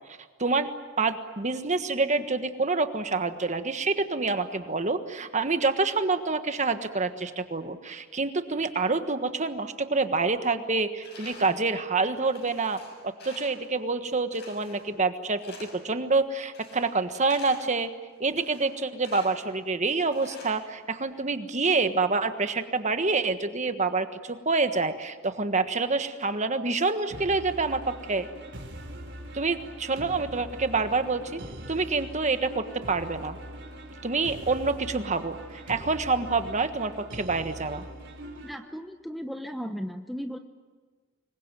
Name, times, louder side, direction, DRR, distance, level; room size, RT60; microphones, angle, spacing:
voice 1, 1.0-12.8 13.0-17.9 18.2-28.3 29.3-31.4 31.7-33.4 34.0-37.8, right 3 dB, 35° right, 9 dB, 1.4 m, -27 dB
Tools, 11.0-11.7 12.1-13.7 14.3-15.0 15.4-16.0 16.5-17.8 18.3-19.5 20.1-21.2, left 3 dB, 50° left, 6.6 m, -48 dB
sound 1, 27.1-38.5, right 1 dB, 55° right, 4.4 m, -42 dB
voice 2, 38.4-40.4, equal, ahead, 5 dB, 0.9 m, -36 dB
26.0 x 22.0 x 9.2 m, 1.4 s
head